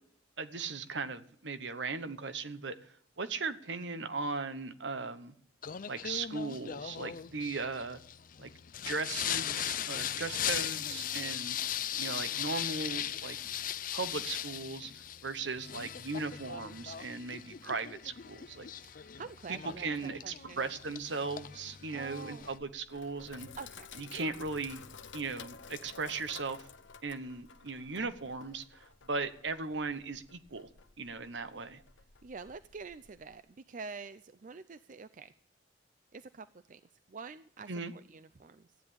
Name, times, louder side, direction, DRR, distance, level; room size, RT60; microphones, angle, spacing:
voice 1, 0.4-2.8 3.2-5.3 5.9-8.0 8.4-8.5 8.9-11.6 12.0-13.4 13.9-14.9 15.2-18.7 19.5-23.5 24.0-24.9 25.1-26.6 27.0-30.7 31.0-31.8 37.7-37.9, right 4 dB, 75° right, 11 dB, 1.1 m, -38 dB
Singing, 5.6-22.6, left 10 dB, 50° left, 0.5 m, -38 dB
voice 2, 18.8-20.7 21.9-22.5 23.6-24.1 32.2-35.3 36.1-36.8 37.1-38.7, right 4 dB, 45° right, 13 dB, 0.5 m, -47 dB
Sink (filling or washing), 22.6-33.4, left 6 dB, 90° left, 0.9 m, -53 dB
14.5 x 10.0 x 7.0 m, 0.64 s
head